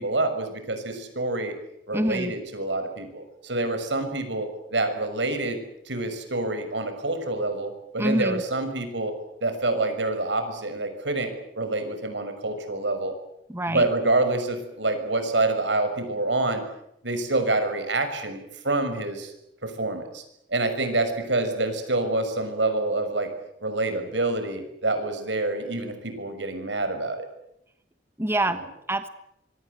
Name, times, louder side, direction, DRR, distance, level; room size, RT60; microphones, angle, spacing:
voice 1, 0.0-1.6 1.9-5.6 5.8-9.1 9.4-13.1 13.7-16.6 17.0-19.3 19.6-20.2 20.5-23.3 23.6-27.3, right 2 dB, 85° right, 8 dB, 6.3 m, -27 dB
voice 2, 1.9-2.3 8.0-8.4 13.5-13.9 28.2-29.1, right 1 dB, 15° right, 9 dB, 1.3 m, -26 dB
26.0 x 23.5 x 8.1 m, 0.79 s
head